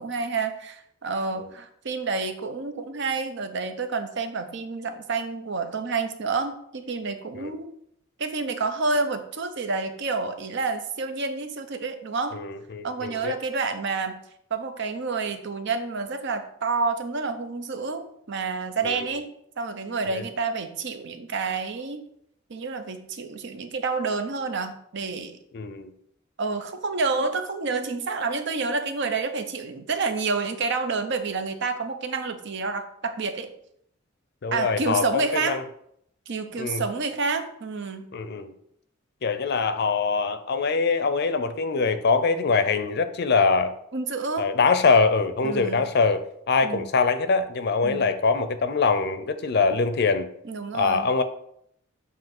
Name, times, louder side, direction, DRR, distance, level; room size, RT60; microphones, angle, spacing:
voice 1, 0.0-7.7 8.2-12.4 12.8-14.2 14.5-19.3 19.6-22.0 22.5-25.4 26.4-33.5 34.5-35.6 36.3-38.1 43.9-44.5 45.4-45.8 46.6-46.9 47.8-48.1 50.4-51.1, right 4 dB, 60° right, 8 dB, 0.7 m, -29 dB
voice 2, 12.3-13.4 18.8-19.1 20.1-20.2 25.5-25.9 34.4-35.6 36.5-36.8 38.1-38.5 39.2-43.7 44.4-50.3 50.7-51.2, left 4 dB, 55° left, 10 dB, 0.5 m, -23 dB
7.4 x 2.8 x 5.9 m, 0.72 s
head